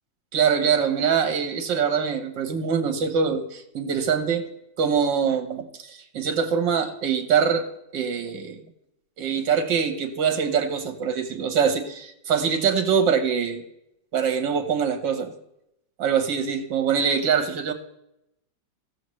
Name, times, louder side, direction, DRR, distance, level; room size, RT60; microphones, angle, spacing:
voice 1, 0.3-4.4 4.8-7.7 7.9-8.6 9.2-13.6 14.1-15.3 16.0-17.7, right 6 dB, 75° right, 6 dB, 1.9 m, -23 dB
17.5 x 7.0 x 3.1 m, 0.82 s
omnidirectional pair, 2.0 m